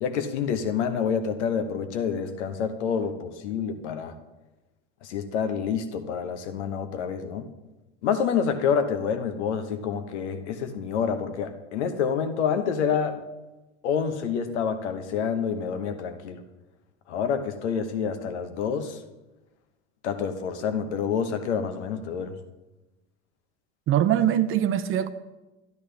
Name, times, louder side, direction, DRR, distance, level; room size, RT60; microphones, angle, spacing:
voice 1, 0.0-4.1 5.0-7.5 8.0-13.2 13.8-16.4 17.1-19.0 20.0-22.3, left 7 dB, 70° left, 1.1 m, -28 dB
voice 2, 23.9-25.1, right 11 dB, 35° right, 0.7 m, -22 dB
12.0 x 10.5 x 3.4 m
hypercardioid pair, 80°, 35 cm